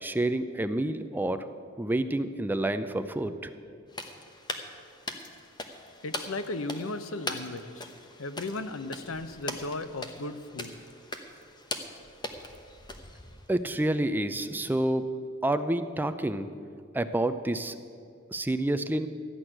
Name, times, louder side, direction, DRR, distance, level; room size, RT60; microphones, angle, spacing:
voice 1, 0.0-1.5 1.8-3.5 13.5-15.1 15.4-16.5 16.9-17.7 18.3-19.1, right 1 dB, 10° right, 10 dB, 0.4 m, -28 dB
sound 1, 3.9-13.6, left 2 dB, 20° left, 0.9 m, -41 dB
voice 2, 6.0-7.9 8.2-10.7, left 2 dB, 80° left, 11 dB, 0.8 m, -36 dB
13.5 x 6.2 x 9.9 m, 2.3 s
head